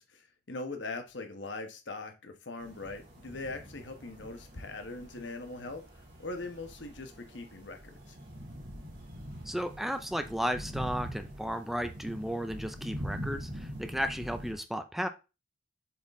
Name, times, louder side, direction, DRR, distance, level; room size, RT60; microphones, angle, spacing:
voice 1, 0.0-5.8 6.2-8.2, left 3 dB, 90° left, 6 dB, 1.3 m, -41 dB
sound 1, 2.6-14.5, equal, 55° right, 2.8 m, -43 dB
voice 2, 9.5-15.1, equal, ahead, 8 dB, 0.5 m, -34 dB
7.4 x 4.2 x 3.6 m, 0.28 s
head